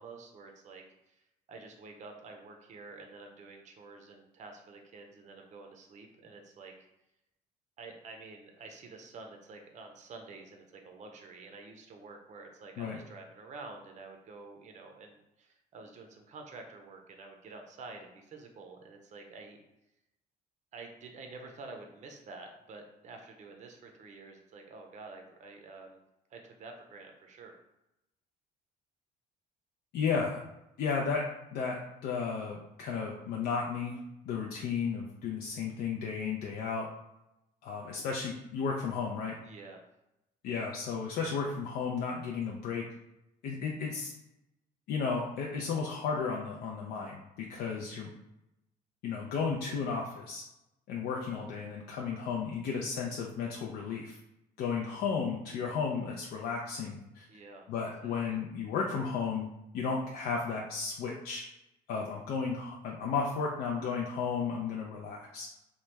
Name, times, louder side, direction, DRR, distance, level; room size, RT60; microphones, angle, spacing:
voice 1, 0.0-6.9 7.8-19.6 20.7-26.0 26.3-27.5 39.4-39.8 57.3-57.7 58.0-58.4, right 3 dB, 45° right, 3 dB, 0.5 m, -49 dB
voice 2, 29.9-30.4 30.8-31.2 31.5-34.0 34.3-36.9 37.6-39.4 40.4-42.8 43.4-44.1 44.9-48.1 49.0-50.4 50.9-54.2 54.6-57.3 57.7-59.5 59.7-61.4 61.9-65.5, left 5 dB, 70° left, -1 dB, 0.5 m, -33 dB
2.9 x 2.2 x 3.3 m, 0.89 s
cardioid pair, 110°, 17 cm